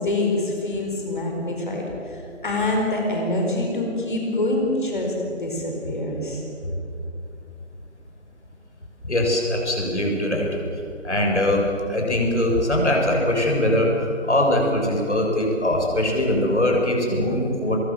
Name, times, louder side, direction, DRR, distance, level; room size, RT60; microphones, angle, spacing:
voice 1, 0.0-1.8 2.4-6.4, left 2 dB, 40° left, 0 dB, 4.8 m, -25 dB
voice 2, 9.1-10.5 11.0-11.6 11.9-13.9 14.3-17.8, left 1 dB, 65° left, 0 dB, 7.1 m, -21 dB
23.5 x 22.5 x 7.5 m, 2.7 s
figure-of-eight pair, 165°, 37 cm